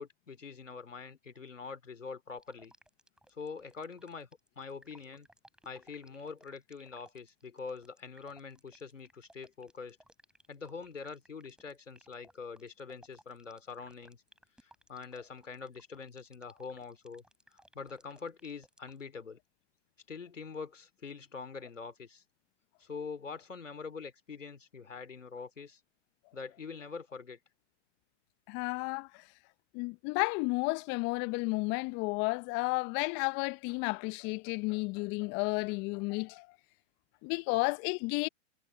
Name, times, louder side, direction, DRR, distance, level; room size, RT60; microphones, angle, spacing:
voice 1, 0.0-2.7 3.3-4.3 4.6-5.3 5.6-10.0 10.5-14.2 14.6-17.2 17.7-19.4 20.1-22.2 22.8-25.8 26.3-27.4, left 5 dB, 85° left, 2.9 m, -44 dB
sound 1, 2.4-19.0, right 1 dB, ahead, 5.2 m, -61 dB
voice 2, 28.5-29.1 29.7-36.5 37.2-38.3, left 28 dB, 30° left, 0.8 m, -32 dB
figure-of-eight pair, 115°, 37 cm